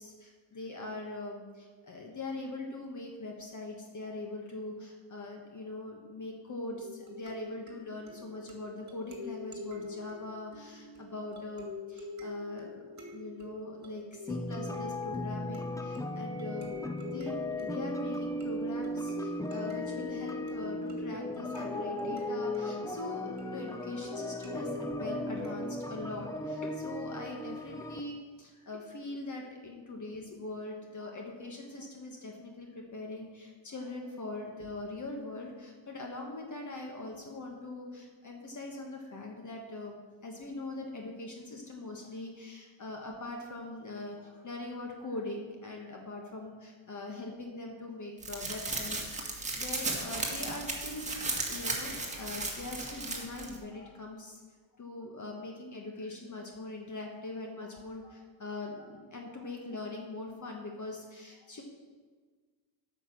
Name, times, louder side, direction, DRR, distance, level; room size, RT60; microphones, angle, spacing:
voice 1, 0.0-51.2 51.5-54.4 54.7-61.6, left 2 dB, 40° left, 1 dB, 1.3 m, -42 dB
sound 1, 6.7-25.9, left 3 dB, 35° right, 2.1 m, -46 dB
sound 2, 14.3-28.0, left 1 dB, 5° left, 0.6 m, -37 dB
sound 3, 48.2-53.6, right 2 dB, 15° right, 1.7 m, -35 dB
8.9 x 5.9 x 7.3 m, 1.5 s
cardioid pair, 120°, 47 cm